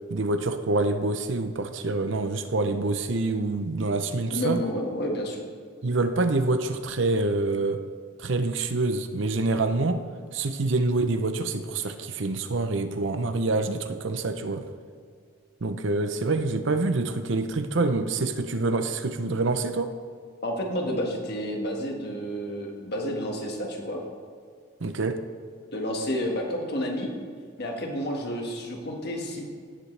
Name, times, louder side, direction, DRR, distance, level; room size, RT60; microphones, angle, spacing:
voice 1, 0.1-4.6 5.8-7.8 8.2-10.0 10.3-14.6 15.6-19.9 24.8-25.2, right 3 dB, 65° right, 8 dB, 0.7 m, -26 dB
voice 2, 4.3-5.5 20.4-24.0 25.7-27.1 27.6-29.4, equal, 50° left, 1 dB, 1.7 m, -30 dB
17.0 x 7.5 x 3.3 m, 2.2 s
head